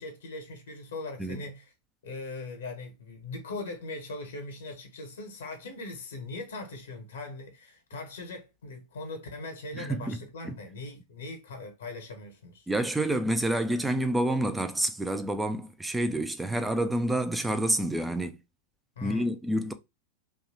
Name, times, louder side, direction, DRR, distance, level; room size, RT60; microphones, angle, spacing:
voice 1, 0.0-1.7 2.0-12.7 19.0-19.3, left 2 dB, 65° left, 0.9 m, -40 dB
voice 2, 9.7-10.2 10.4-10.6 12.7-18.4 19.0-19.7, right 1 dB, 5° right, 0.4 m, -28 dB
3.0 x 2.3 x 2.8 m
figure-of-eight pair, 90°, 0 cm